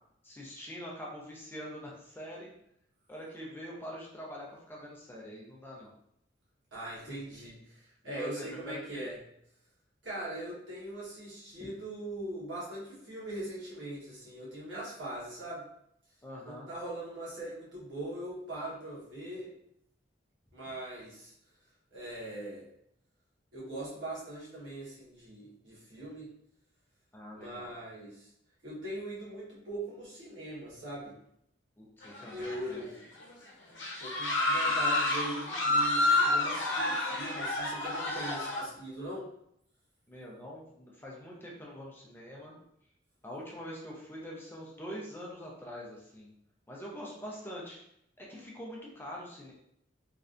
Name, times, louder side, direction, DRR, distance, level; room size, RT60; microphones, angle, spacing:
voice 1, 0.2-2.5 3.1-5.9 8.0-9.1 16.2-16.7 27.1-27.7 31.8-32.8 40.1-42.5 43.2-46.3 46.7-47.8 48.2-49.5, equal, 10° left, -4 dB, 0.5 m, -44 dB
voice 2, 6.7-9.1 10.0-15.6 16.4-19.5 20.5-21.3 21.9-22.7 23.5-26.3 27.3-28.3 28.6-31.1 32.3-33.0 34.0-39.3, right 1 dB, 75° right, -6 dB, 1.3 m, -41 dB
sound 1, 32.0-32.9 33.2-33.3 33.8-38.6, left 2 dB, 75° left, 0.7 m, -29 dB
3.2 x 2.5 x 2.5 m, 0.73 s
head